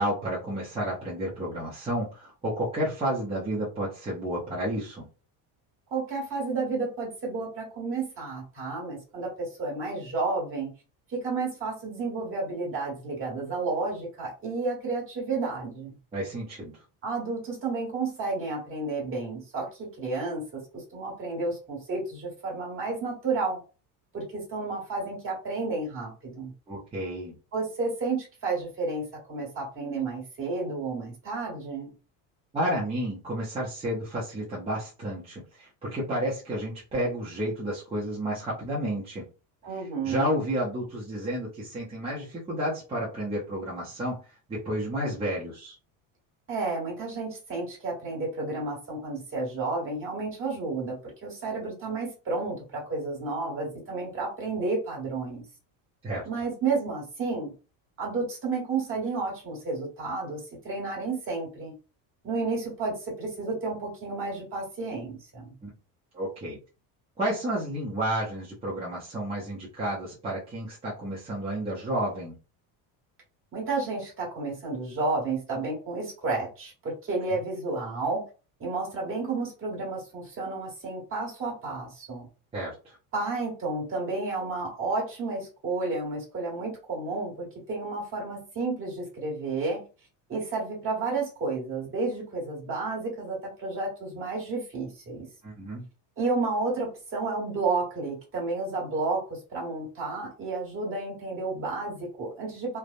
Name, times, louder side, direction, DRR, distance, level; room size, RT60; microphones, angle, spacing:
voice 1, 0.0-5.0 16.1-16.8 26.7-27.3 32.5-39.2 40.0-45.7 56.0-56.2 65.6-65.7 66.1-66.6 67.2-72.3 82.5-83.0 95.4-95.8, right 1 dB, 15° right, -7 dB, 0.6 m, -31 dB
voice 2, 5.9-10.7 11.1-16.0 17.0-23.6 24.1-26.5 27.5-31.9 39.6-40.4 46.5-55.4 56.2-57.5 58.0-61.7 62.2-65.5 73.5-78.2 78.6-82.3 83.1-89.8 90.3-95.3 96.2-102.8, right 3 dB, 30° right, -3 dB, 1.4 m, -31 dB
3.2 x 2.1 x 2.5 m, 0.34 s
cardioid pair, 165°, 42 cm